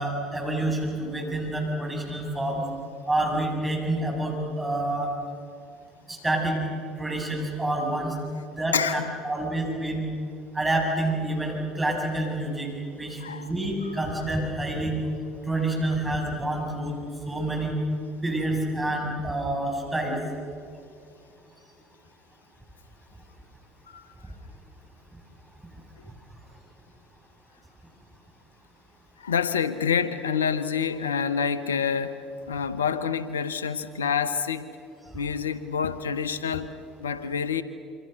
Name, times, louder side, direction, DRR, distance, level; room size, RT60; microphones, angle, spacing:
voice 1, 0.0-2.6 3.1-5.1 6.1-6.6 7.0-8.1 8.6-8.8 9.2-10.1 10.5-15.0 15.4-17.0 17.3-17.8 18.2-20.2, right 1 dB, 15° right, 0 dB, 7.6 m, -28 dB
voice 2, 8.7-9.2 13.2-13.5 23.9-24.0 29.2-34.7 35.1-36.7 37.0-37.6, left 7 dB, 85° left, 14 dB, 1.1 m, -27 dB
27.0 x 25.5 x 6.8 m, 2.4 s
hypercardioid pair, 65°, 0 cm